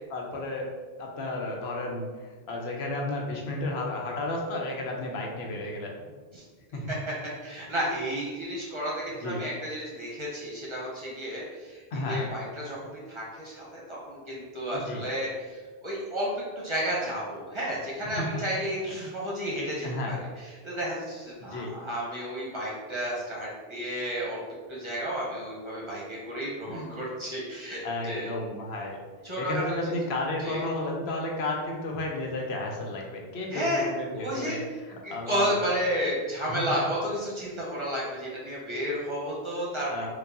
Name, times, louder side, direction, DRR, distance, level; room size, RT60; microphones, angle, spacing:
voice 1, 0.1-0.7 1.0-6.1 6.7-7.0 9.2-9.4 11.9-12.3 14.7-15.0 18.1-18.4 18.8-19.1 19.8-20.1 21.4-21.7 26.7-26.9 27.8-29.0 29.4-34.6 34.9-35.7 36.5-36.6 39.9-40.1, left 2 dB, 85° left, 0 dB, 0.9 m, -33 dB
voice 2, 7.4-16.3 16.6-24.4 24.7-28.4 29.2-29.9 30.4-30.7 33.5-34.6 35.0-40.1, equal, 30° right, -6 dB, 0.8 m, -32 dB
4.6 x 2.3 x 2.6 m, 1.4 s
omnidirectional pair, 1.0 m